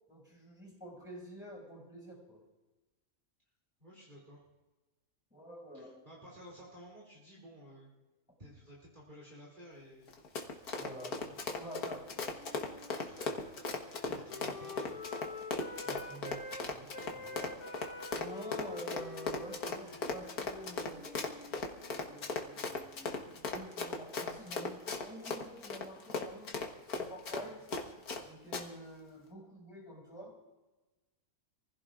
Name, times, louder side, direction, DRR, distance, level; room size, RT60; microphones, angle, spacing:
voice 1, 0.1-2.4 5.3-6.0 10.8-11.2 11.6-12.1 15.8-16.9 17.1-17.6 18.0-21.3 21.9-26.5 26.9-27.6 28.2-30.4, right 1 dB, 5° right, -3 dB, 6.4 m, -48 dB
voice 2, 3.8-4.4 5.7-7.9 8.4-10.1 11.2-11.3 13.0-13.6 14.0-15.0 16.8-16.9, equal, 30° right, -6 dB, 3.0 m, -54 dB
Run, 10.1-28.2 28.5-28.6, left 4 dB, 85° left, 1.9 m, -38 dB
Wind instrument woodwind instrument, 11.7-16.6 16.9-22.2, left 3 dB, 55° left, 1.4 m, -48 dB
27.0 x 16.0 x 2.5 m, 1.2 s
omnidirectional pair, 1.6 m